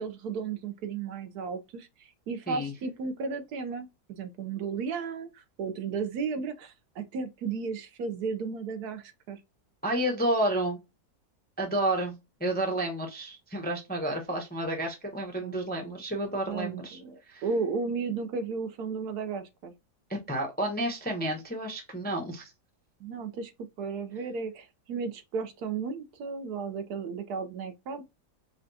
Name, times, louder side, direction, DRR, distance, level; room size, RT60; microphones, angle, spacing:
voice 1, 0.0-9.4 15.4-15.6 16.5-19.7 23.0-23.5 23.8-28.0, right 5 dB, 75° right, 1.2 m, -34 dB
voice 2, 9.8-10.8 11.6-17.0 17.3-17.4 20.1-22.5, right 1 dB, 10° left, 0.5 m, -30 dB
5.0 x 2.3 x 2.6 m
omnidirectional pair, 1.8 m